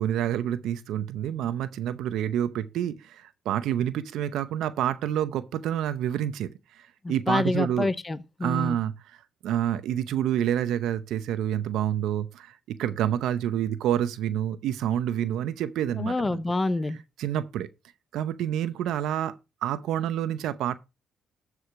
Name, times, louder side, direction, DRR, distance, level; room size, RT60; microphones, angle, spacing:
voice 1, 0.0-7.9 8.4-9.2 9.4-16.4 17.2-17.7 18.1-20.8, right 10 dB, 85° right, 0.7 m, -28 dB
voice 2, 7.0-8.8 16.0-17.0, left 2 dB, 20° left, 0.7 m, -27 dB
12.5 x 4.9 x 4.7 m
cardioid pair, 90°, 0 cm